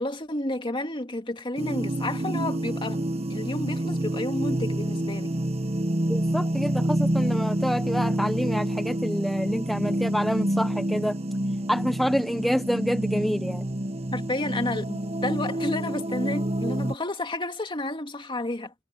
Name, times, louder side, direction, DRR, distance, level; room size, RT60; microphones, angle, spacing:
voice 1, 0.0-3.0 3.3-5.4 14.1-18.7, left 1 dB, 25° left, 2.3 m, -31 dB
sound 1, 1.6-16.9, right 1 dB, 35° right, 1.2 m, -28 dB
voice 2, 6.1-11.2 11.7-13.7, equal, ahead, 0.7 m, -27 dB
head